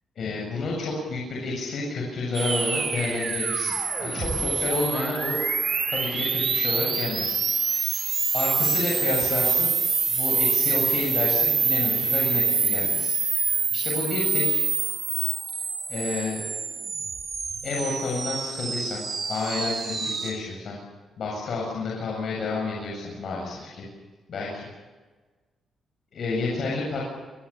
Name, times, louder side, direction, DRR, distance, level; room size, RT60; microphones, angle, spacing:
voice 1, 0.2-3.7 4.0-5.4 5.9-7.8 8.3-9.7 10.1-14.6 15.9-16.4 17.6-19.0 19.3-20.8 21.2-23.9 24.3-24.7 26.1-27.0, left 3 dB, 50° left, -3 dB, 7.9 m, -30 dB
sound 1, 2.3-20.3, right 5 dB, 35° right, 5.3 m, -26 dB
28.0 x 23.0 x 7.4 m, 1.3 s
cardioid pair, 160°, 0 cm